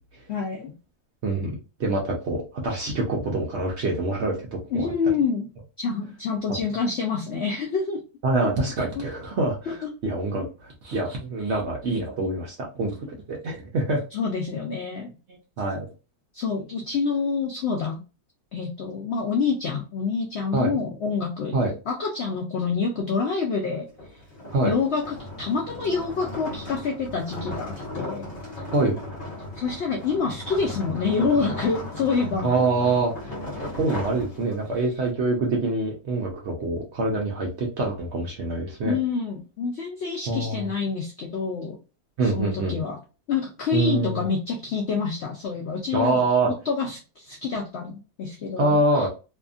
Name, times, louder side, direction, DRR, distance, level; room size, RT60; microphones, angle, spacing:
voice 1, 0.3-0.7 4.7-5.5 5.8-8.0 9.0-9.1 9.7-9.9 10.4-10.5 14.1-15.1 16.3-18.0 18.5-21.6 21.9-23.9 24.6-28.3 29.5-32.5 38.8-41.8 42.2-43.0 43.3-49.1, left 5 dB, 80° left, 2 dB, 0.6 m, -27 dB
voice 2, 1.2-4.9 8.2-13.0 13.3-14.0 15.3-15.9 20.5-20.7 21.5-21.7 24.5-24.7 28.7-29.0 32.4-33.3 33.8-39.0 40.3-40.7 42.2-42.8 43.7-44.3 45.9-46.5 48.6-49.1, right 2 dB, 65° right, -1 dB, 0.7 m, -25 dB
sound 1, 23.9-34.9, left 1 dB, 45° left, 1.0 m, -36 dB
2.7 x 2.5 x 2.3 m, 0.32 s
omnidirectional pair, 1.7 m